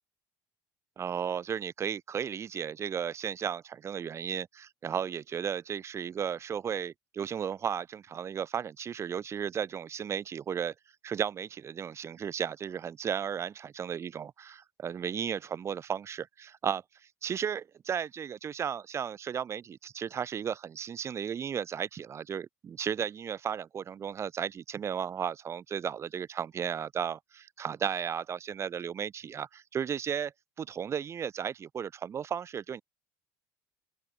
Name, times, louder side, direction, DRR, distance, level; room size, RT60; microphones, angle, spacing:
voice 1, 1.0-10.7 11.0-16.8 17.2-30.3 30.6-32.8, right 8 dB, 30° right, 0.5 m, -34 dB
open air
supercardioid pair, 100°, 9 cm